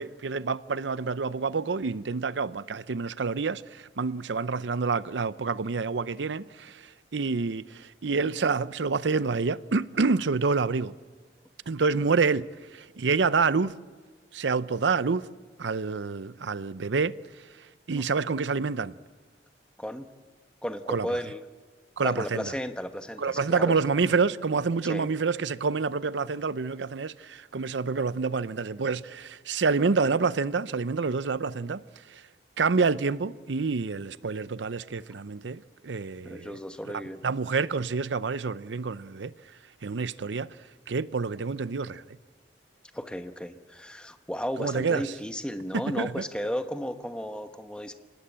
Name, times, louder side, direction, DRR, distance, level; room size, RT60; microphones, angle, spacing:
voice 1, 0.0-10.9 11.7-13.7 14.3-15.3 15.6-18.9 20.9-21.1 22.0-22.5 23.2-32.3 32.6-36.6 37.2-39.3 39.8-40.6 40.9-42.2 44.6-45.1 45.7-46.2, right 4 dB, 90° right, 0.6 m, -28 dB
voice 2, 18.0-18.3 19.8-20.1 20.6-21.4 22.0-23.8 24.8-25.1 36.2-37.2 42.9-47.9, equal, 5° left, 1.1 m, -34 dB
26.0 x 19.0 x 8.8 m
head